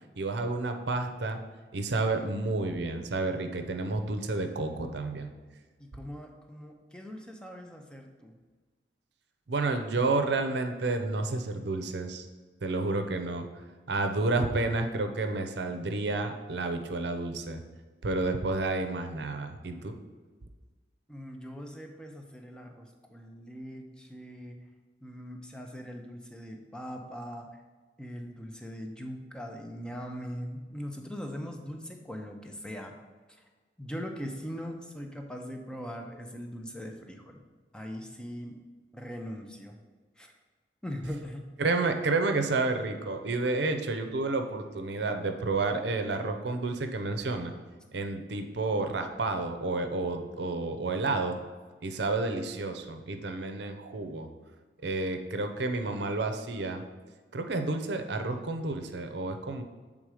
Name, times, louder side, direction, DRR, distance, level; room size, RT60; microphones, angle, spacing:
voice 1, 0.2-1.4 1.7-5.3 9.5-12.2 12.6-13.4 13.9-17.6 18.0-20.0 41.6-47.5 47.9-51.4 51.8-54.3 54.8-56.8 57.3-59.6, right 3 dB, 65° right, 6 dB, 0.6 m, -30 dB
voice 2, 5.8-8.3 21.1-24.6 25.0-27.5 28.0-32.9 33.4-33.5 33.8-37.4 37.7-38.6 38.9-39.8 40.2-40.3 40.8-41.5, equal, 5° left, 3 dB, 0.6 m, -41 dB
7.6 x 3.7 x 4.8 m, 1.4 s
head